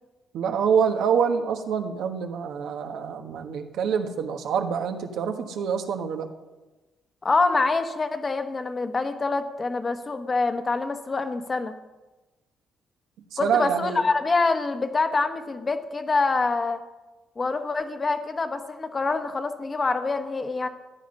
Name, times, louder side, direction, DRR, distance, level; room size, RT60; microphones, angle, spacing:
voice 1, 0.3-6.3 13.3-14.0, right 7 dB, 80° right, 5 dB, 1.3 m, -26 dB
voice 2, 7.2-11.7 13.4-16.8 17.4-20.7, left 3 dB, 30° left, 7 dB, 1.2 m, -25 dB
14.5 x 9.5 x 5.4 m, 1.1 s
cardioid pair, 90°, 0 cm